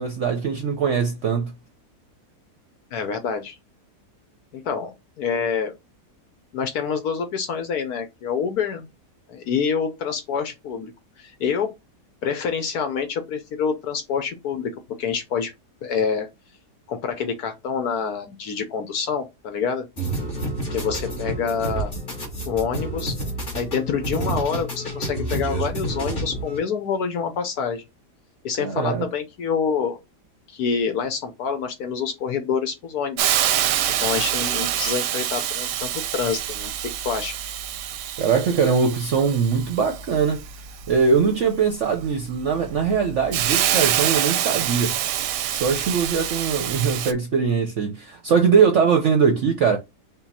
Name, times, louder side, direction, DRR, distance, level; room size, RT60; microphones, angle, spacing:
voice 1, 0.0-1.5 28.6-29.1 38.2-40.4 40.9-44.9 45.5-49.8, right 6 dB, 60° right, 0.8 m, -21 dB
voice 2, 2.9-3.6 4.5-5.7 6.5-8.9 9.3-10.9 11.2-11.7 12.2-14.7 15.0-15.5 15.8-16.3 16.9-19.9 20.7-21.9 22.5-23.2 23.5-27.8 28.4-30.0 30.5-33.4 33.9-37.3, left 6 dB, 70° left, 1.2 m, -27 dB
sound 1, 20.0-26.6, right 2 dB, 35° left, 1.9 m, -29 dB
Hiss, 33.2-47.1, right 11 dB, 90° right, 1.2 m, -26 dB
5.5 x 2.3 x 4.1 m
omnidirectional pair, 1.7 m